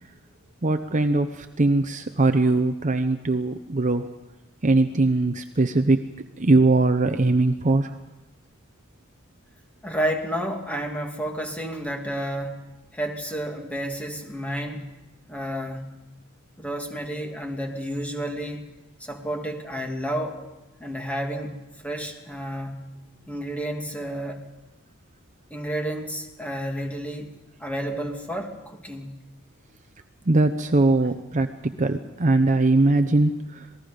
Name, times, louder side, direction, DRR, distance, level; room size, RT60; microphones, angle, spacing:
voice 1, 0.6-4.1 4.6-6.1 6.4-8.0 30.2-33.7, right 2 dB, 35° right, 8 dB, 0.8 m, -21 dB
voice 2, 9.8-12.6 12.9-14.9 15.3-15.9 16.6-18.7 19.0-20.4 20.8-21.6 21.8-22.9 23.3-24.4 25.5-27.3 27.6-29.2, equal, 5° left, 2 dB, 2.5 m, -31 dB
27.5 x 19.5 x 5.2 m, 0.99 s
head